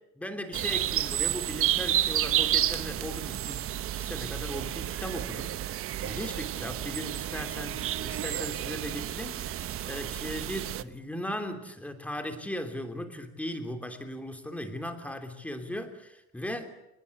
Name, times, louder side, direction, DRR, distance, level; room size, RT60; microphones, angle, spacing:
voice 1, 0.2-16.7, equal, 5° left, 7 dB, 3.1 m, -38 dB
sound 1, 0.5-10.8, right 12 dB, 40° right, 1.1 m, -31 dB
29.0 x 20.0 x 8.5 m, 0.88 s
cardioid pair, 150°, 34 cm